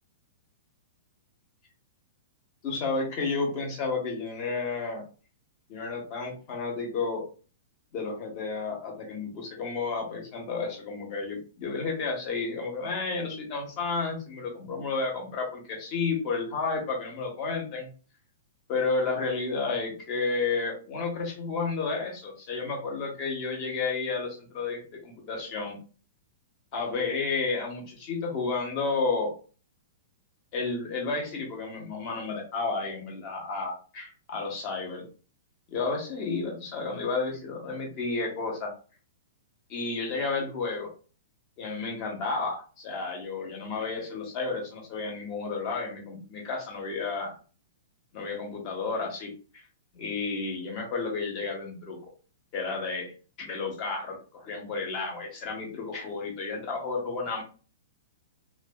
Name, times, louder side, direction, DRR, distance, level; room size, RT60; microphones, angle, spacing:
voice 1, 2.6-5.0 5.7-7.2 7.9-17.9 18.7-25.8 26.7-29.3 30.5-35.0 35.7-38.7 39.7-40.9 41.6-47.4 48.1-49.3 49.9-52.0 52.5-53.1 53.4-57.4, left 4 dB, 30° left, 0 dB, 0.9 m, -31 dB
2.4 x 2.2 x 2.3 m, 0.38 s
hypercardioid pair, 160°, 0 cm